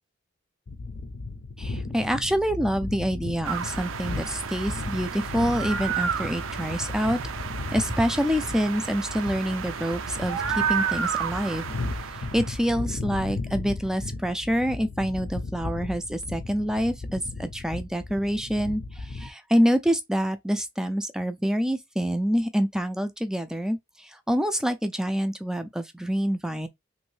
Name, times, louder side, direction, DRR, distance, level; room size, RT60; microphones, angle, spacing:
sound 1, 0.7-19.3, left 3 dB, 55° left, 0.5 m, -36 dB
voice 1, 1.6-7.2 7.7-11.6 12.1-26.7, equal, 5° right, 0.3 m, -26 dB
sound 2, 3.4-12.6, right 7 dB, 80° right, 0.4 m, -31 dB
3.1 x 2.6 x 3.1 m
head